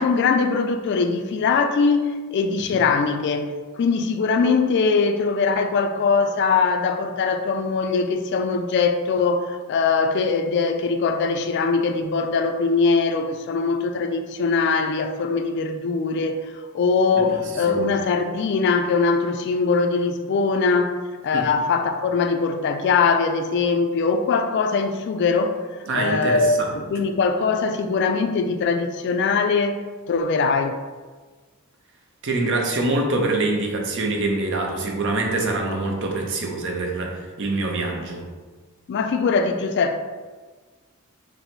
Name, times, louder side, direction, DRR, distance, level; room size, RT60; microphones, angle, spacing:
voice 1, 0.0-16.4 16.7-20.9 21.2-25.6 25.9-30.8 38.9-40.0, left 4 dB, 55° left, 0.3 m, -21 dB
voice 2, 17.2-17.8 21.3-21.5 25.9-26.8 32.2-38.2, right 2 dB, 60° right, 0.6 m, -25 dB
3.8 x 2.0 x 4.4 m
head